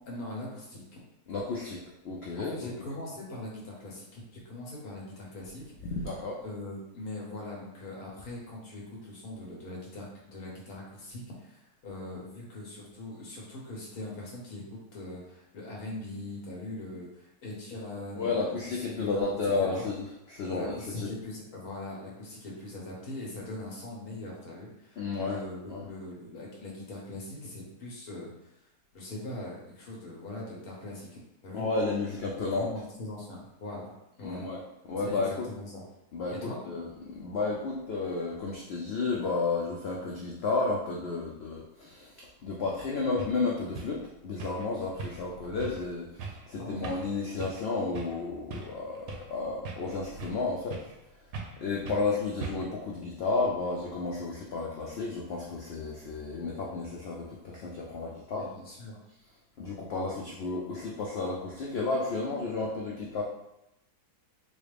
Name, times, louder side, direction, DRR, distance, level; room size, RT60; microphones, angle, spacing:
voice 1, 0.1-1.0 2.4-5.7 6.4-19.9 20.5-31.6 32.4-33.9 34.2-34.5 35.0-35.8 36.4-36.6 46.5-46.9 58.4-59.0, left 2 dB, 70° left, -3 dB, 1.3 m, -41 dB
voice 2, 1.3-2.7 5.8-6.4 18.2-21.0 25.0-25.4 25.7-25.8 31.5-32.7 34.2-34.6 34.9-35.5 36.1-50.8 51.6-58.5 59.6-63.2, left 3 dB, 90° left, -2 dB, 0.5 m, -32 dB
sound 1, 42.7-42.8 43.2-43.4 43.7-44.0 44.4-44.7 45.0-45.3 45.6-45.8 46.2-46.4 46.8-47.1 47.4-47.7 47.9-48.2 48.5-49.3 49.6-50.4 50.7-51.0 51.3-51.6 51.8-52.1 52.4-52.8, right 4 dB, 70° right, 1.0 m, -40 dB
4.1 x 2.3 x 3.3 m, 0.87 s
omnidirectional pair, 1.7 m